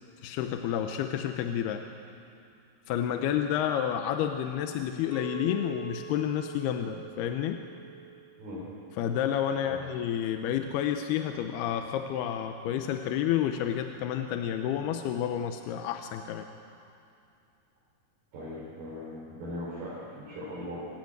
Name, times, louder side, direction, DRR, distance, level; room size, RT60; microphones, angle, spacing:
voice 1, 0.2-1.8 2.9-7.6 9.0-16.5, left 10 dB, 90° left, 6 dB, 2.8 m, -30 dB
Chink clink, 5.1-9.4 9.9-10.3, right 7 dB, 15° left, 4.9 m, -44 dB
voice 2, 18.3-20.8, left 1 dB, 70° right, -8 dB, 6.7 m, -39 dB
27.0 x 15.0 x 9.5 m, 2.6 s
omnidirectional pair, 4.6 m